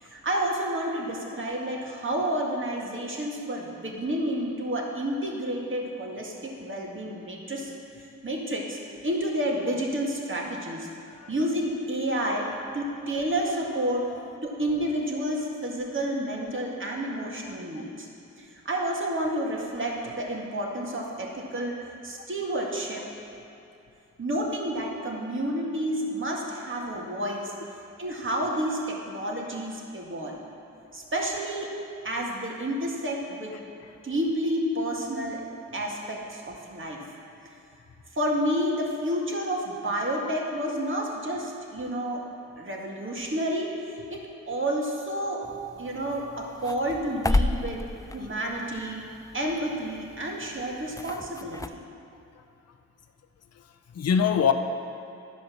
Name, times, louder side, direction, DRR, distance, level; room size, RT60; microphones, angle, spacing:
voice 1, 0.0-7.7 8.2-8.8 9.0-10.9 11.3-12.5 12.7-14.1 14.4-18.1 18.4-21.8 22.0-23.0 24.2-27.5 28.0-30.3 30.9-31.7 32.0-33.6 34.0-35.4 35.7-37.1 38.1-42.2 42.6-45.4 45.8-47.8 48.1-49.0 49.3-51.8, right 1 dB, 40° right, -2 dB, 2.1 m, -30 dB
sound 1, 45.4-51.7, left 2 dB, 10° left, 0.4 m, -33 dB
voice 2, 53.9-54.5, left 7 dB, 55° left, 7 dB, 0.7 m, -24 dB
12.0 x 5.1 x 6.2 m, 2.7 s
supercardioid pair, 45°, 30 cm